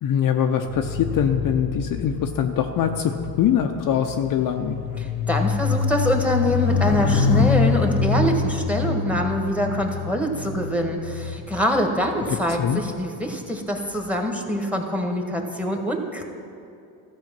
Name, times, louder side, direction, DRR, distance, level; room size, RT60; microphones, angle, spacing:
voice 1, 0.0-4.8 12.3-12.8, left 8 dB, 45° left, 5 dB, 0.7 m, -23 dB
sound 1, 0.7-12.3 13.0-13.3, left 5 dB, 75° left, 0.9 m, -25 dB
voice 2, 5.0-16.2, equal, 5° right, 3 dB, 1.5 m, -24 dB
13.5 x 5.0 x 7.4 m, 2.6 s
supercardioid pair, 75°, 45 cm